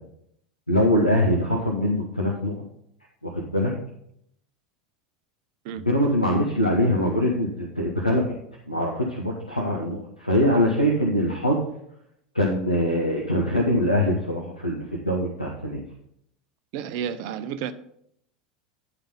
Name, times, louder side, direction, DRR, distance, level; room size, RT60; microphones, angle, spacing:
voice 1, 0.7-2.6 3.2-3.7 5.7-8.3 8.7-11.7 12.3-15.8, equal, 90° left, 0.9 m, -23 dB
voice 2, 16.7-17.7, right 8 dB, 50° right, 0.5 m, -31 dB
9.9 x 3.9 x 5.4 m
figure-of-eight pair, 80°, 4 cm